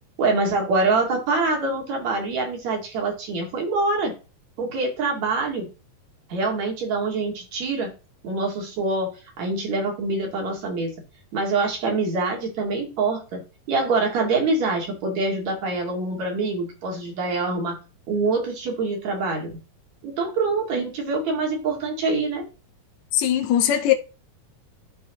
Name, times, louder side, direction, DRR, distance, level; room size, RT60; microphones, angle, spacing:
voice 1, 0.2-4.1 4.6-5.7 6.3-7.9 8.2-9.1 9.4-10.9 11.3-17.8 18.1-19.5 20.0-22.4, right 3 dB, 50° right, 3.4 m, -25 dB
voice 2, 23.1-23.9, left 11 dB, 65° left, 1.9 m, -20 dB
13.0 x 4.6 x 3.1 m
omnidirectional pair, 4.3 m